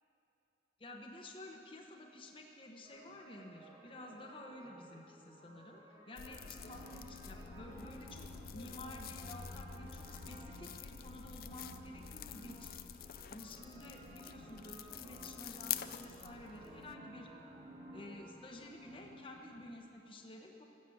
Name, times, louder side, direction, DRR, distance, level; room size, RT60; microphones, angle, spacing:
voice 1, 0.8-5.8 6.1-17.3 17.9-20.6, left 1 dB, 30° left, 1 dB, 1.0 m, -51 dB
sound 1, 2.8-18.5, right 1 dB, 20° right, 1.2 m, -59 dB
sound 2, 6.2-16.9, left 9 dB, 55° left, 0.4 m, -47 dB
sound 3, 6.2-8.5 8.8-10.9 11.2-12.7 13.5-19.2 19.4-19.6, right 1 dB, 70° right, 2.7 m, -56 dB
15.0 x 7.7 x 7.8 m, 2.9 s
head